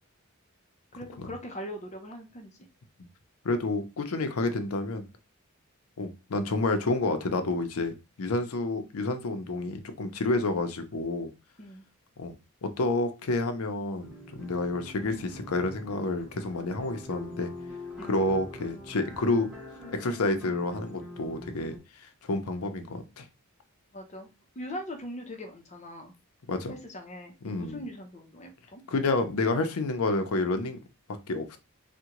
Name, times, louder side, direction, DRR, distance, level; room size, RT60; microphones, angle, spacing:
voice 1, 0.9-2.5 11.6-11.8 18.0-18.1 23.9-24.3 24.6-26.1 26.7-28.8, equal, 30° left, 0.6 m, -41 dB
voice 2, 3.4-5.1 6.0-7.9 8.2-11.3 12.2-12.3 12.6-17.5 18.0-19.5 19.9-21.8 22.3-23.2 26.5-26.7 27.4-27.8 28.9-30.8 31.3-31.6, left 2 dB, 85° left, 0.5 m, -29 dB
sound 1, 14.0-21.8, left 1 dB, 5° right, 1.3 m, -44 dB
3.5 x 2.1 x 2.9 m
head